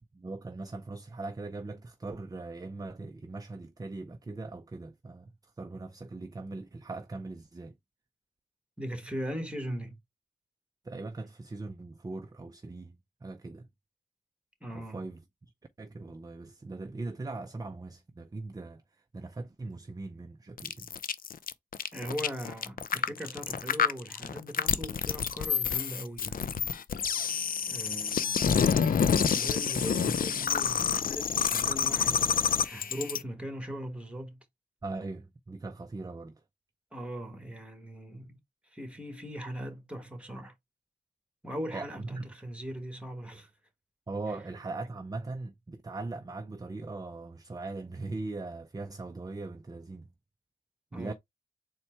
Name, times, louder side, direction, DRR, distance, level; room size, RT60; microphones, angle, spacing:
voice 1, 0.1-7.7 10.8-13.0 13.2-13.7 14.7-15.2 15.8-18.8 19.1-20.9 34.8-36.3 41.7-42.3 44.1-50.1 50.9-51.1, right 3 dB, 25° right, 0.5 m, -40 dB
voice 2, 8.8-10.0 14.6-15.1 21.9-27.4 27.7-34.4 36.9-38.4 38.6-40.5 41.4-43.5 50.9-51.1, equal, 5° right, 1.4 m, -40 dB
sound 1, 20.6-33.2, left 7 dB, 65° left, 0.4 m, -28 dB
4.2 x 2.2 x 4.4 m
cardioid pair, 50°, 16 cm